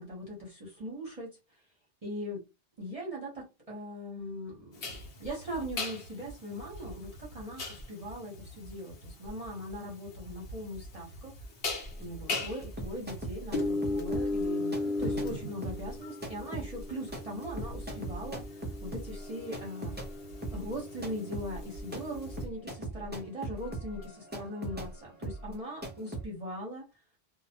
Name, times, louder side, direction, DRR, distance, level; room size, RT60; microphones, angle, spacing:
voice 1, 0.0-1.4 2.0-2.4 2.8-11.3 12.0-20.0 20.5-26.8, equal, 40° right, 0.8 m, -40 dB
sound 1, 4.8-22.4, left 2 dB, 65° left, 0.9 m, -37 dB
sound 2, 11.9-20.1 20.4-26.3, right 1 dB, 15° right, 0.4 m, -40 dB
2.3 x 2.0 x 2.7 m
omnidirectional pair, 1.1 m